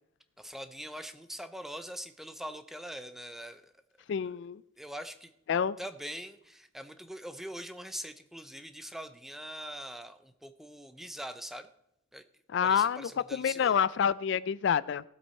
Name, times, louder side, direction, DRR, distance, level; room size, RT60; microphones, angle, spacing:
voice 1, 0.4-3.7 4.8-5.3 5.8-11.7 12.1-12.2 12.6-13.8, equal, ahead, 9 dB, 0.6 m, -43 dB
voice 2, 4.1-4.6 5.5-5.8 12.5-15.0, left 7 dB, 60° left, 18 dB, 0.3 m, -28 dB
16.5 x 7.7 x 4.4 m, 0.79 s
head